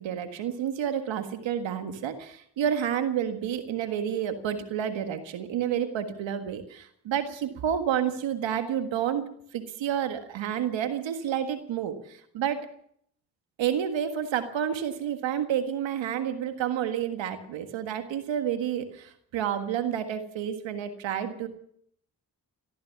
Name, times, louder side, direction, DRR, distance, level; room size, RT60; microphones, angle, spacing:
voice 1, 0.0-9.3 9.5-12.6 13.6-21.5, right 9 dB, 85° right, 8 dB, 1.7 m, -30 dB
18.5 x 13.0 x 5.8 m, 0.66 s
supercardioid pair, 40°, 44 cm